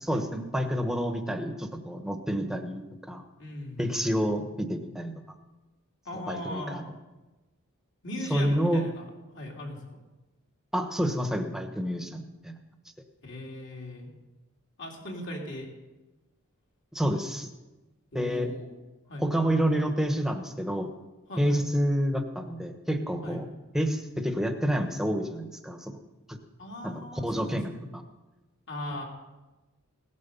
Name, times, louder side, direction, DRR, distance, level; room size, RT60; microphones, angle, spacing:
voice 1, 0.0-3.2 3.8-5.1 6.1-6.8 8.3-8.8 10.7-12.5 16.9-17.5 18.1-18.5 19.2-20.9 21.4-23.5 23.7-25.9 26.3-26.4 26.8-27.7, equal, ahead, 5 dB, 1.1 m, -28 dB
voice 2, 3.4-4.2 6.0-6.8 8.0-9.1 9.3-10.0 13.2-14.1 14.8-15.7 18.1-18.7 19.1-19.3 21.3-21.6 23.2-23.4 26.6-27.8 28.7-29.0, left 1 dB, 55° left, 0 dB, 3.4 m, -38 dB
17.5 x 9.5 x 7.0 m, 1.1 s
head